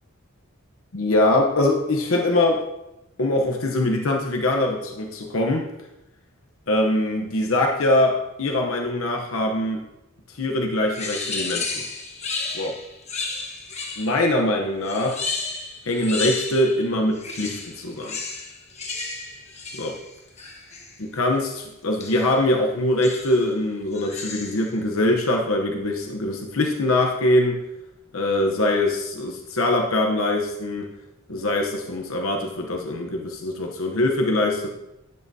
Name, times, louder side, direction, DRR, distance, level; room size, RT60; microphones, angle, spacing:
voice 1, 0.9-2.7 3.2-5.7 6.7-9.8 10.4-11.8 12.5-12.7 14.0-15.2 15.9-18.2 19.7-20.0 21.0-27.6 28.1-30.9 31.3-34.7, left 1 dB, 70° left, 1 dB, 0.9 m, -23 dB
sound 1, 10.9-14.3 14.8-16.8 17.1-21.0 22.0-22.4 23.0-23.5 23.9-24.7, left 3 dB, 30° left, 1.3 m, -33 dB
11.0 x 7.7 x 2.8 m, 0.93 s
head